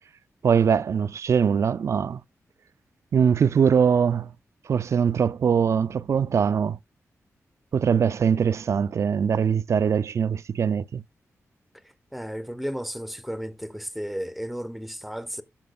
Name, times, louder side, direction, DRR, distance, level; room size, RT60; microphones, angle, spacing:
voice 1, 0.4-2.2 3.1-4.3 4.7-6.8 7.7-11.0, right 7 dB, 60° right, 0.4 m, -22 dB
voice 2, 12.1-15.4, equal, ahead, 0.8 m, -33 dB
14.5 x 5.9 x 2.3 m
wide cardioid pair, 105°, 6 cm